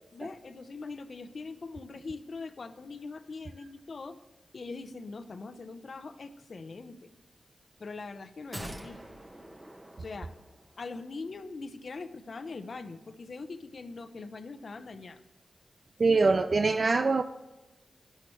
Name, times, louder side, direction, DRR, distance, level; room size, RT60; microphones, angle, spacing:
voice 1, 0.1-4.2 4.5-7.1 7.8-9.0 10.0-10.3 10.8-15.2 16.1-16.2, left 3 dB, 65° left, 9 dB, 0.9 m, -42 dB
sound 1, 8.5-10.9 11.2-11.3, right 1 dB, 20° right, 1.4 m, -45 dB
voice 2, 16.0-17.2, right 3 dB, 55° right, 9 dB, 0.4 m, -23 dB
12.0 x 10.5 x 3.2 m, 1.1 s
cardioid pair, 55°, 0 cm